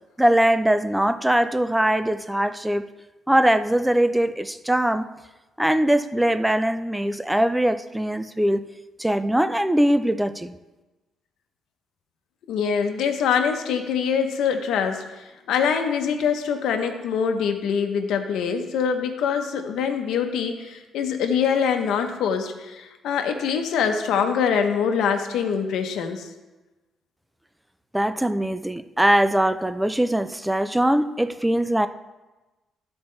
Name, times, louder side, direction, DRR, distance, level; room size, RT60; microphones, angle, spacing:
voice 1, 0.2-2.9 3.3-5.1 5.6-8.6 9.0-10.6 27.9-31.9, right 1 dB, 5° right, 11 dB, 0.4 m, -21 dB
voice 2, 12.5-26.3, left 7 dB, 80° left, 5 dB, 0.8 m, -24 dB
12.5 x 4.3 x 3.2 m, 1.1 s
cardioid pair, 90°, 0 cm